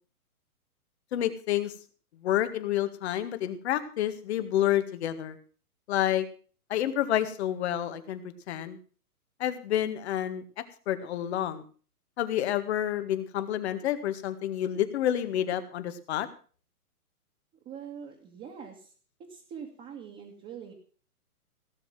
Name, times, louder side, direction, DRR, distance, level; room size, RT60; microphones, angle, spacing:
voice 1, 1.1-1.7 2.2-5.4 5.9-6.3 6.7-8.2 8.5-8.8 9.4-10.4 10.9-11.6 12.2-16.3, left 11 dB, 45° left, 10 dB, 1.9 m, -29 dB
voice 2, 17.6-18.9 19.3-20.7, right 7 dB, 20° right, -1 dB, 2.3 m, -43 dB
17.0 x 7.1 x 7.4 m, 0.41 s
hypercardioid pair, 135°, 45 cm